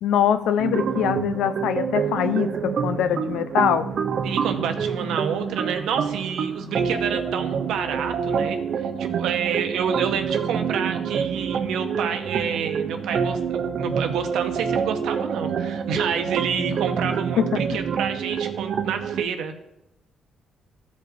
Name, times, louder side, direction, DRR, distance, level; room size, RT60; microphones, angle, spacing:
voice 1, 0.0-3.9 17.4-17.5, left 9 dB, 85° left, 10 dB, 0.5 m, -23 dB
sound 1, 0.6-19.3, right 7 dB, 60° right, 0.5 m, -27 dB
voice 2, 4.2-19.5, right 7 dB, 85° right, 6 dB, 0.8 m, -29 dB
13.5 x 5.3 x 2.6 m, 0.87 s
cardioid pair, 90°, 0 cm